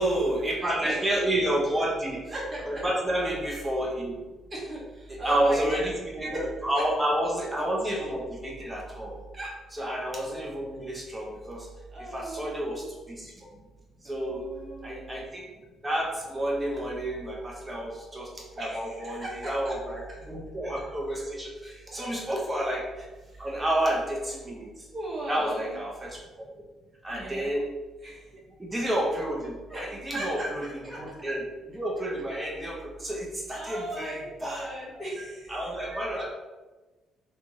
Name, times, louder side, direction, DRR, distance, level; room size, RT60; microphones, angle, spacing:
voice 1, 0.0-2.2 2.7-4.1 5.1-9.2 9.7-11.7 12.1-13.3 14.0-14.4 14.8-15.4 15.8-18.3 18.6-22.8 23.4-24.7 25.3-26.2 27.0-27.6 28.6-30.6 31.0-34.7 35.5-36.3, right 1 dB, 15° right, -3 dB, 1.0 m, -30 dB
voice 2, 0.6-1.0 2.3-2.8 4.5-5.9 6.3-6.8 9.3-9.6 11.9-12.9 14.0-15.2 18.5-19.8 21.9-22.3 23.3-23.5 24.9-25.7 27.1-27.5 28.0-28.3 29.7-30.5 30.8-31.0 33.5-35.6, right 1 dB, 35° right, -5 dB, 1.4 m, -36 dB
3.4 x 2.9 x 3.0 m, 1.2 s
cardioid pair, 95°, 0 cm